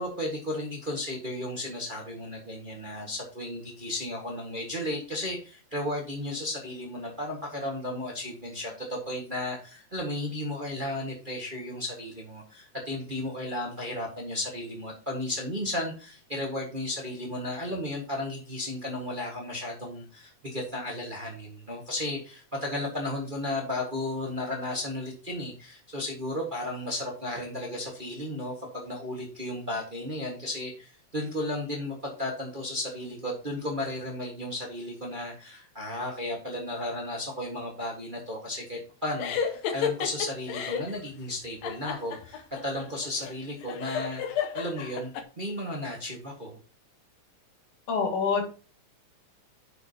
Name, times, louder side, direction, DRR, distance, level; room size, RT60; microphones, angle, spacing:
voice 1, 0.0-44.2 44.5-46.6, left 1 dB, 30° right, 0 dB, 1.0 m, -34 dB
sound 1, 39.2-40.9 41.6-45.2, left 8 dB, 70° left, 2.0 m, -32 dB
voice 2, 47.9-48.5, left 5 dB, 55° left, 2 dB, 3.2 m, -26 dB
9.6 x 6.2 x 2.8 m, 0.37 s
omnidirectional pair, 3.3 m